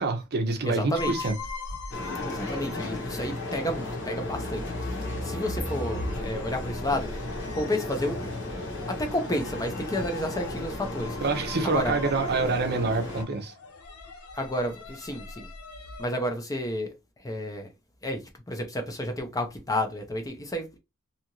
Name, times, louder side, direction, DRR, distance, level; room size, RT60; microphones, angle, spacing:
voice 1, 0.0-1.3 11.2-13.5, right 3 dB, 50° right, 0.6 m, -26 dB
voice 2, 0.7-1.1 2.2-4.6 5.2-7.1 7.5-8.3 8.9-11.2 11.6-12.0 14.4-15.5 16.0-16.9 17.2-17.7 18.0-18.2 18.5-20.8, left 1 dB, 15° left, 0.5 m, -31 dB
sound 1, 0.9-16.1, left 2 dB, 85° left, 0.6 m, -40 dB
sound 2, 1.9-13.2, left 1 dB, 55° left, 1.1 m, -35 dB
2.7 x 2.4 x 2.9 m
head